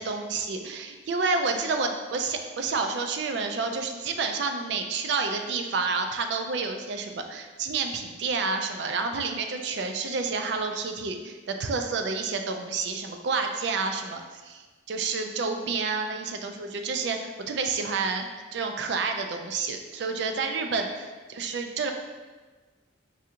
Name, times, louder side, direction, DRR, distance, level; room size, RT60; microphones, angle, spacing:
voice 1, 0.0-20.9 21.4-21.9, right 4 dB, 60° right, 5 dB, 0.4 m, -29 dB
4.7 x 2.4 x 2.8 m, 1.3 s
head